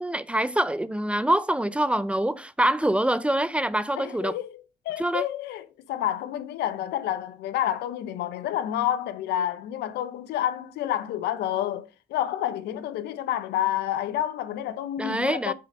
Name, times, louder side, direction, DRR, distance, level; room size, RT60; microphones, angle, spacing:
voice 1, 0.0-4.4 5.0-5.3 15.0-15.5, right 1 dB, 5° right, 0.4 m, -25 dB
voice 2, 4.0-15.5, left 11 dB, 75° left, 0.8 m, -29 dB
6.4 x 4.2 x 5.1 m
cardioid pair, 110°, 17 cm